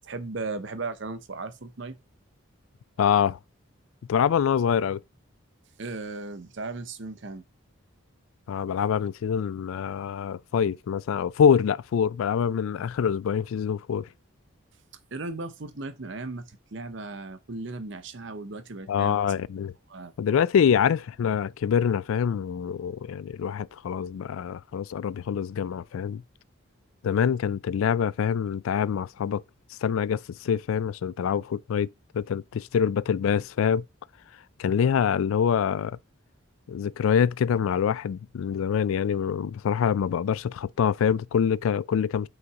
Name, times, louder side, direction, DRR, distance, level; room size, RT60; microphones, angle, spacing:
voice 1, 0.0-2.0 5.8-7.4 15.1-19.2 19.9-20.1, right 3 dB, 60° right, 0.7 m, -36 dB
voice 2, 3.0-3.4 4.1-5.0 8.5-14.1 18.9-19.7 20.2-26.2 27.0-29.4 29.8-33.8 34.6-36.0 36.7-42.3, left 7 dB, 75° left, 0.3 m, -25 dB
5.6 x 3.9 x 4.6 m
head